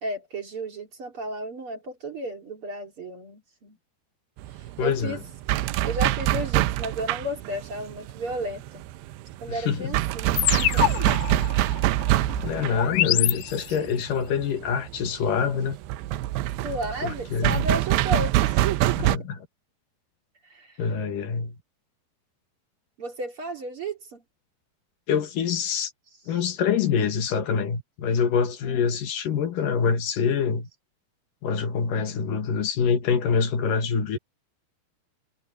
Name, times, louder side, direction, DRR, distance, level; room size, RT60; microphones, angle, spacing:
voice 1, 0.0-3.8 4.8-5.2 5.8-8.8 9.4-11.2 13.7-13.9 16.6-19.1 20.5-20.8 23.0-24.2 28.6-28.9, right 1 dB, 35° right, 2.8 m, -33 dB
sound 1, 4.4-19.2, right 15 dB, 85° right, 2.8 m, -25 dB
voice 2, 4.8-5.2 9.5-9.9 12.4-15.8 17.0-17.7 19.0-19.4 20.8-21.6 25.1-25.9 26.3-30.7 31.4-34.2, left 6 dB, 60° left, 3.0 m, -25 dB
sound 2, 10.4-14.0, left 16 dB, 85° left, 2.9 m, -27 dB
omnidirectional pair, 4.8 m